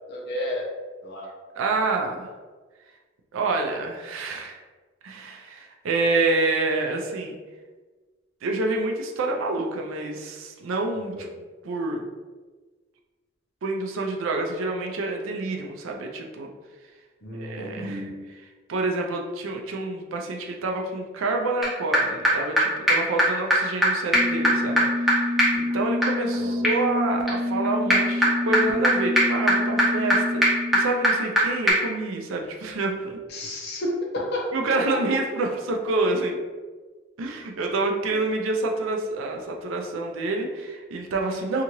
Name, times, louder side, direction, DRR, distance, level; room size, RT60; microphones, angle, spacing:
voice 1, 0.1-0.7 1.0-1.3 11.1-11.3 17.2-18.1 26.4-26.7 33.3-34.5, left 1 dB, 50° left, -2 dB, 0.6 m, -31 dB
voice 2, 1.6-2.3 3.3-4.6 5.0-7.4 8.4-11.3 11.6-12.1 13.6-16.5 17.3-18.4 18.7-33.2 34.5-36.4 37.2-41.6, right 2 dB, 70° right, 2 dB, 0.4 m, -27 dB
sound 1, 21.6-21.7 21.9-22.0 22.2-22.3 22.6-22.7 22.9-23.0 23.2-23.3 23.5-23.6 23.8-23.9 24.1-31.4 31.7-31.8, equal, ahead, 0.5 m, -22 dB
2.8 x 2.4 x 2.9 m, 1.3 s
head